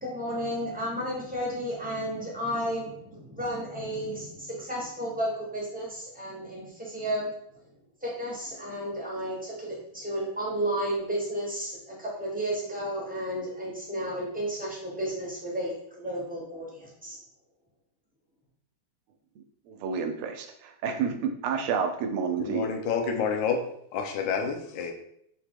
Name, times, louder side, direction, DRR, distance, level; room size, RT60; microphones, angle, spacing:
voice 1, 0.0-7.3 8.0-17.2, equal, 10° right, -5 dB, 0.4 m, -32 dB
voice 2, 19.7-22.7, right 6 dB, 85° right, 6 dB, 1.5 m, -29 dB
voice 3, 22.5-23.7 23.9-24.9, left 6 dB, 70° left, 4 dB, 1.2 m, -28 dB
4.8 x 2.8 x 3.6 m, 0.71 s
omnidirectional pair, 2.3 m